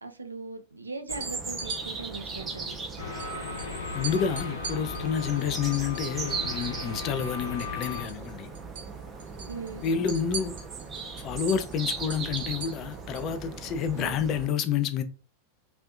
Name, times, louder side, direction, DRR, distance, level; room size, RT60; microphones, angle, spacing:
voice 1, 0.0-2.8 9.5-9.9 13.9-14.2, right 3 dB, 80° right, 0.4 m, -39 dB
sound 1, 1.1-14.5, right 4 dB, 20° right, 0.5 m, -38 dB
sound 2, 1.1-1.8 3.2-3.3 3.6-3.7 4.0-6.8 7.1-8.3 8.5-8.9 9.2-13.3, right 4 dB, 55° right, 0.9 m, -40 dB
sound 3, 3.0-8.0, left 4 dB, 75° left, 0.7 m, -36 dB
voice 2, 3.9-8.5 9.8-10.6 11.2-15.0, left 7 dB, 35° left, 0.3 m, -29 dB
2.5 x 2.1 x 2.4 m
figure-of-eight pair, 90°, 0 cm